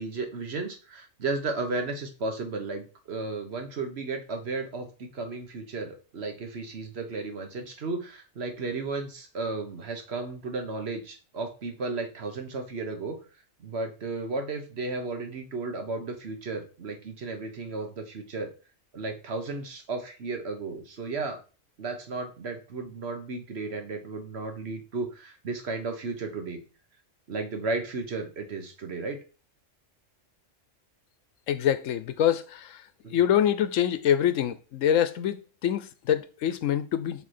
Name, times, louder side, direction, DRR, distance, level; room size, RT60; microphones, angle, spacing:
voice 1, 0.0-13.2 13.6-18.5 18.9-21.4 21.8-26.6 27.3-29.2 33.0-33.2, right 3 dB, 55° right, 1.2 m, -34 dB
voice 2, 31.5-32.8 33.1-37.2, left 10 dB, 80° left, 1.0 m, -25 dB
7.7 x 3.4 x 4.3 m
omnidirectional pair, 1.3 m